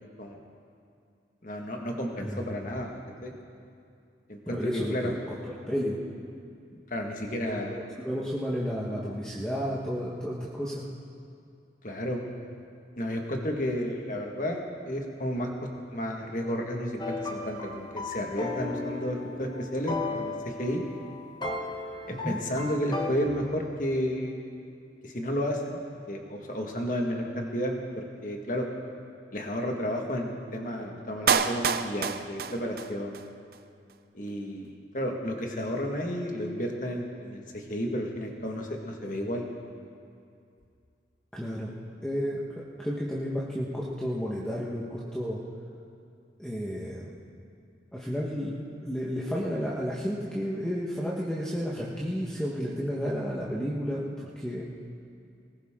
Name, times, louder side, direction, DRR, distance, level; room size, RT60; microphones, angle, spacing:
voice 1, 1.4-3.3 4.3-5.1 6.9-7.8 11.8-12.2 13.0-15.5 15.9-20.8 22.1-24.4 25.0-25.8 26.1-28.7 29.3-33.2 34.1-39.4, equal, 45° left, 1 dB, 1.8 m, -32 dB
voice 2, 4.5-5.1 5.6-6.0 6.7-6.8 7.3-10.9 22.1-22.4 41.3-41.7 42.0-42.4 42.8-45.4 46.4-47.1 47.9-48.5 48.8-54.6, equal, 5° left, -6 dB, 1.3 m, -32 dB
sound 1, 17.0-23.1, left 3 dB, 25° left, 1.2 m, -35 dB
Clapping, 31.3-33.3 33.5-33.6, right 6 dB, 55° right, 0.6 m, -27 dB
20.0 x 18.0 x 3.8 m, 2.4 s
head